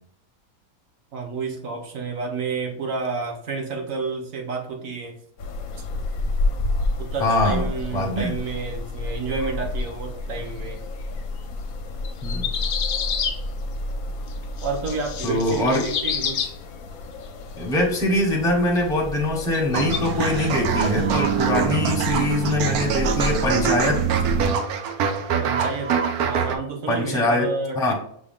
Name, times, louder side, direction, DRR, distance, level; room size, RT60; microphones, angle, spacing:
voice 1, 1.1-5.1 7.0-10.8 14.6-16.5 25.4-27.9, right 4 dB, 65° right, 3 dB, 1.3 m, -30 dB
sound 1, 5.4-24.5, left 2 dB, 70° left, 1.0 m, -31 dB
voice 2, 7.2-7.6 7.9-8.3 12.2-12.5 15.2-15.9 17.6-24.0 26.9-27.5 27.8-27.9, left 1 dB, 5° left, 0 dB, 0.7 m, -23 dB
sound 2, 12.0-13.4 14.3-14.4 14.6-16.6 19.5-20.0, left 7 dB, 90° left, 0.5 m, -28 dB
sound 3, 19.7-26.6, right 6 dB, 85° right, 1.1 m, -24 dB
6.0 x 2.3 x 3.6 m, 0.67 s
omnidirectional pair, 1.6 m